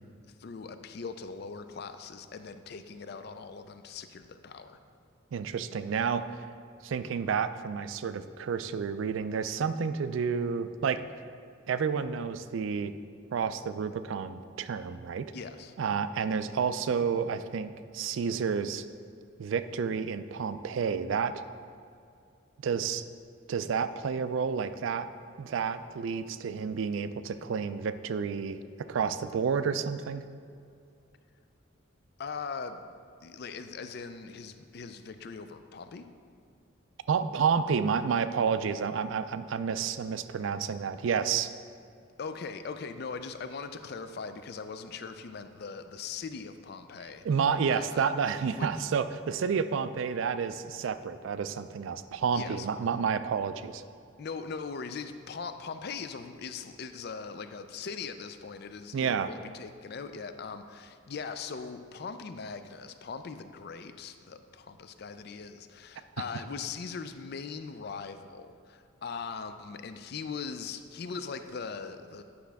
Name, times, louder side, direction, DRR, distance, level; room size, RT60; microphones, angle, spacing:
voice 1, 0.4-4.8 15.3-15.7 32.2-32.8 33.2-36.1 42.2-47.3 47.7-48.0 48.5-48.7 52.3-52.7 54.2-72.2, left 5 dB, 50° left, 9 dB, 0.4 m, -40 dB
voice 2, 5.3-6.2 6.8-11.0 11.7-12.9 13.3-15.3 15.8-18.8 19.4-21.4 22.6-23.0 23.5-25.1 25.4-30.2 37.1-41.5 47.2-53.8 58.9-59.3, right 6 dB, 70° right, 12 dB, 0.3 m, -30 dB
9.6 x 6.1 x 3.4 m, 2.4 s
head